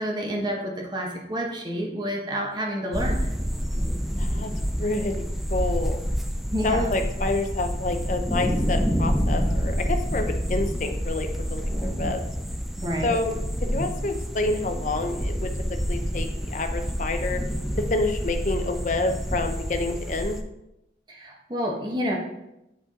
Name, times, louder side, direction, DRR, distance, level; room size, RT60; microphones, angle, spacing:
voice 1, 0.0-3.3 6.5-6.8 12.8-13.2 21.1-22.2, equal, 25° right, 0 dB, 1.1 m, -29 dB
sound 1, 2.9-20.4, equal, ahead, 0.4 m, -28 dB
voice 2, 4.2-4.5 4.8-5.1 5.5-6.0 6.6-12.2 13.0-13.4 13.7-15.5 15.9-17.4 17.9-20.4, left 2 dB, 45° left, 6 dB, 0.6 m, -28 dB
8.0 x 4.4 x 3.7 m, 0.88 s
head